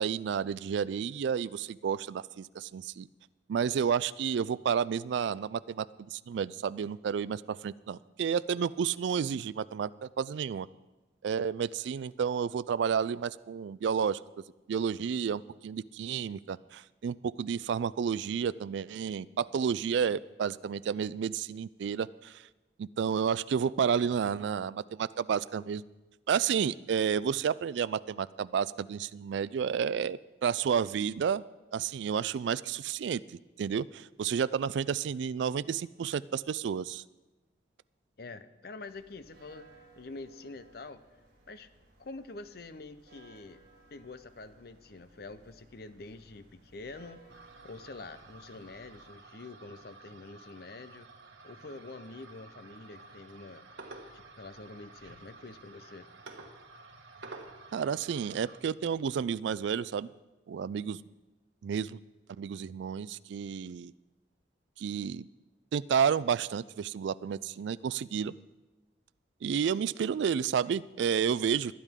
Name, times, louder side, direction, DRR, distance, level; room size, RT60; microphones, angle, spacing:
voice 1, 0.0-3.1 3.5-10.7 11.2-14.2 14.7-22.4 22.8-25.8 26.3-31.4 31.7-37.0 57.7-60.1 60.5-61.0 61.6-62.0 62.4-63.9 64.8-65.3 65.7-68.3 69.4-71.7, right 7 dB, 70° right, 18 dB, 0.3 m, -31 dB
voice 2, 38.2-41.0 41.5-41.7 42.0-43.6 43.9-47.3 47.6-51.1 51.4-53.7 54.1-56.1, left 3 dB, 55° left, 12 dB, 0.7 m, -46 dB
sound 1, 38.8-49.1, right 2 dB, 55° right, 5.2 m, -60 dB
sound 2, 47.3-58.6, right 3 dB, 85° right, 1.4 m, -51 dB
21.0 x 10.0 x 3.7 m, 1.1 s
head